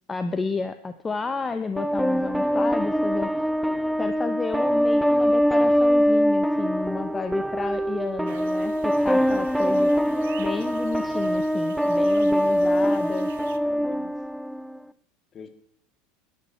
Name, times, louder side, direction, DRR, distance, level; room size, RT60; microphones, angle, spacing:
voice 1, 0.1-3.5 4.0-9.9 10.4-13.3, left 4 dB, 20° left, 9 dB, 0.9 m, -31 dB
sound 1, 1.8-14.8, equal, 5° right, 0.5 m, -23 dB
sound 2, 8.3-13.6, right 12 dB, 75° right, 0.7 m, -48 dB
voice 2, 12.3-12.9 13.4-14.1 15.3-15.5, left 7 dB, 35° left, 10 dB, 1.8 m, -43 dB
13.0 x 11.0 x 4.3 m, 0.73 s
hypercardioid pair, 85°, 0 cm